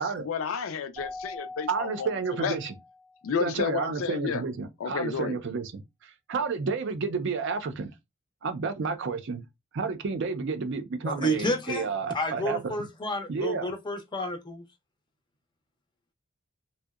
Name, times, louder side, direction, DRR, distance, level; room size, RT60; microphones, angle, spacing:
voice 1, 0.0-2.1 2.4-2.6 3.2-4.4 4.8-5.4, left 6 dB, 75° left, 0.4 m, -31 dB
Keyboard (musical), 1.0-3.2, left 3 dB, 15° right, 0.7 m, -42 dB
voice 2, 1.7-2.7 3.4-7.9 8.4-9.4 9.7-12.7 13.3-13.7, right 5 dB, 60° right, 0.5 m, -31 dB
voice 3, 11.0-11.9 12.1-14.6, equal, 20° left, 0.5 m, -30 dB
2.7 x 2.0 x 2.3 m
head